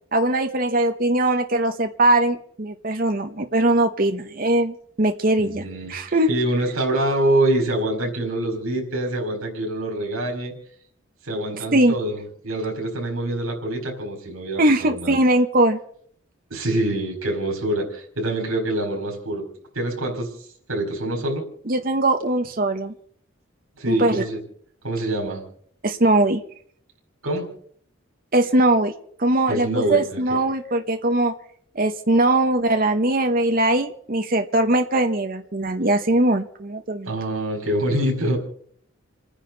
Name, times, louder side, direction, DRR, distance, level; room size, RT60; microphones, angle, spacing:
voice 1, 0.1-6.3 11.7-11.9 14.6-15.8 21.7-22.9 23.9-24.2 25.8-26.4 28.3-28.9 29.2-31.3 31.7-37.1, right 1 dB, 45° right, 6 dB, 1.0 m, -20 dB
voice 2, 5.4-10.5 11.2-15.2 16.5-19.5 19.7-21.4 23.8-24.4 24.8-25.4 27.2-27.5 29.5-30.2 37.0-38.4, right 1 dB, 85° right, 2 dB, 4.7 m, -25 dB
29.5 x 10.0 x 4.0 m, 0.63 s
head